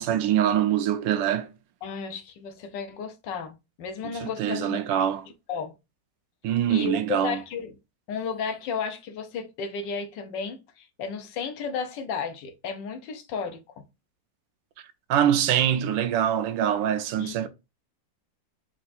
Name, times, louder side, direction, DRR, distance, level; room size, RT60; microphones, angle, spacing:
voice 1, 0.0-1.5 4.1-5.2 6.4-7.4 15.1-17.5, right 10 dB, 80° right, 1.3 m, -24 dB
voice 2, 1.8-4.8 5.5-5.7 6.7-7.7 8.1-13.8 17.2-17.3, left 6 dB, 75° left, 1.4 m, -33 dB
4.5 x 2.4 x 4.2 m
omnidirectional pair, 2.0 m